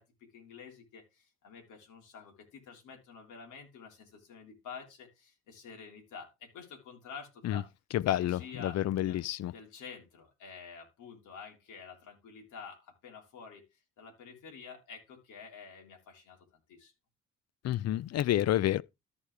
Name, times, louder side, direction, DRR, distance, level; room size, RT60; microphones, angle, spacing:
voice 1, 0.0-7.7 8.0-9.2 9.5-16.9, left 5 dB, 80° left, 3.6 m, -49 dB
voice 2, 7.9-8.4 8.9-9.5 17.6-18.8, left 13 dB, 60° left, 0.5 m, -28 dB
14.0 x 4.9 x 3.3 m
cardioid pair, 90°, 30 cm